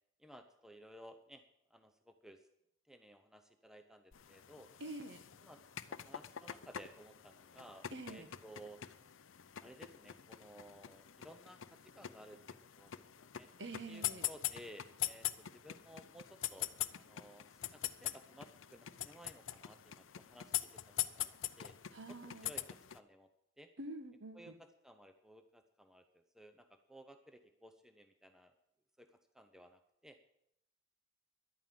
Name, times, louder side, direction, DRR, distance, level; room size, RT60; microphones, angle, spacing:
voice 1, 0.2-1.4 1.7-2.5 2.9-4.7 5.4-5.6 5.9-8.8 9.6-13.5 13.9-21.8 22.3-22.6 22.9-23.3 23.6-23.7 24.3-28.5 29.0-29.1 29.3-30.2, equal, ahead, 7 dB, 0.6 m, -57 dB
sound 1, 4.1-23.0, left 13 dB, 70° left, 0.6 m, -44 dB
voice 2, 4.8-5.2 7.9-8.3 13.6-14.3 21.9-22.5 23.8-24.6, right 2 dB, 60° right, 8 dB, 1.3 m, -47 dB
11.5 x 9.0 x 7.6 m, 0.78 s
head